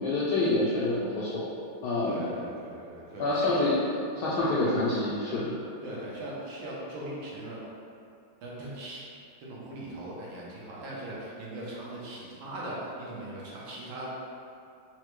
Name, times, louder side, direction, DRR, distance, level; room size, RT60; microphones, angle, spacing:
voice 1, 0.0-1.5 1.8-2.2 3.2-3.7 4.2-5.5, left 2 dB, 75° left, -9 dB, 0.9 m, -27 dB
voice 2, 2.0-3.5 5.8-7.6 8.4-9.0 9.4-14.1, right 1 dB, 80° right, -6 dB, 1.6 m, -39 dB
4.4 x 2.1 x 3.0 m, 2.5 s
omnidirectional pair, 2.3 m